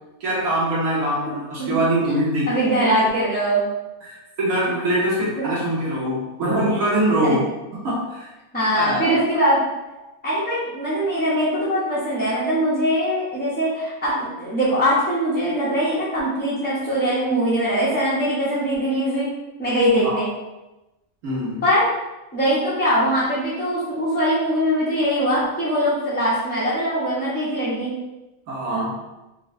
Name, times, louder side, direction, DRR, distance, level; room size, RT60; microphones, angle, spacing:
voice 1, 0.2-2.6 4.0-7.5 7.7-8.3 8.8-9.1 20.0-20.2 21.2-21.6 28.5-29.0, right 1 dB, 85° right, -6 dB, 1.3 m, -23 dB
voice 2, 2.5-3.6 5.4-5.5 7.2-7.4 8.5-9.6 10.2-19.3 19.6-20.3 21.6-21.8 22.3-27.9, equal, 10° left, -10 dB, 0.5 m, -22 dB
4.4 x 2.1 x 2.5 m, 1.0 s
omnidirectional pair, 1.5 m